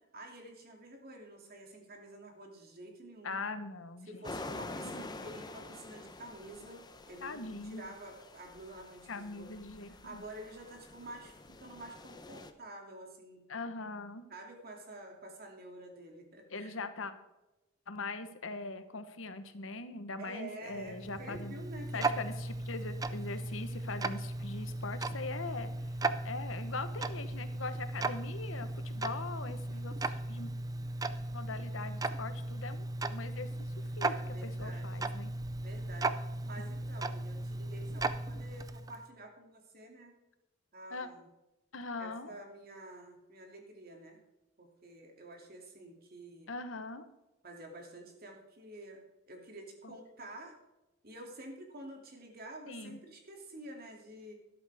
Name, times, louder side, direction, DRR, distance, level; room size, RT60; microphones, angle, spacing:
voice 1, 0.1-3.4 4.0-9.5 9.8-13.4 14.3-16.7 20.2-22.2 29.7-29.8 34.1-35.1 35.6-40.1 40.7-41.3 42.0-44.2 44.6-46.5 47.4-50.6 51.0-54.3, right 1 dB, 50° right, 2 dB, 2.6 m, -49 dB
voice 2, 3.2-4.2 4.8-4.9 7.2-7.8 9.1-10.2 13.5-14.3 16.5-17.1 17.9-21.5 21.9-25.9 26.2-30.5 31.3-33.5 33.8-35.3 40.9-41.1 41.7-42.3 46.5-47.0 49.8-49.9 52.7-53.0, left 3 dB, 80° left, 10 dB, 1.1 m, -41 dB
sound 1, 4.2-12.5, left 2 dB, 20° left, 0.8 m, -47 dB
Tick-tock, 20.7-39.0, right 2 dB, 20° right, 0.5 m, -37 dB
13.0 x 11.5 x 3.5 m, 1.0 s
head